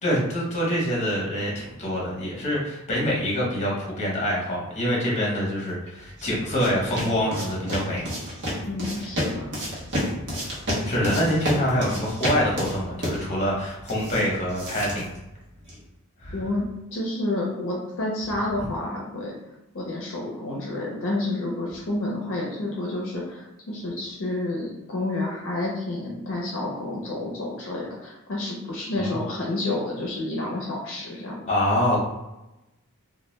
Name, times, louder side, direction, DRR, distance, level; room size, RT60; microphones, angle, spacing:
voice 1, 0.0-8.1 10.8-15.0 16.2-16.4 29.0-29.2 31.5-32.0, equal, 30° left, -4 dB, 0.8 m, -25 dB
sound 1, 5.9-15.9, equal, 55° right, 0.9 m, -31 dB
voice 2, 8.6-9.4 16.3-16.6 16.9-19.3 19.7-31.4, left 2 dB, 60° left, -3 dB, 0.6 m, -29 dB
2.2 x 2.2 x 3.0 m, 0.95 s
head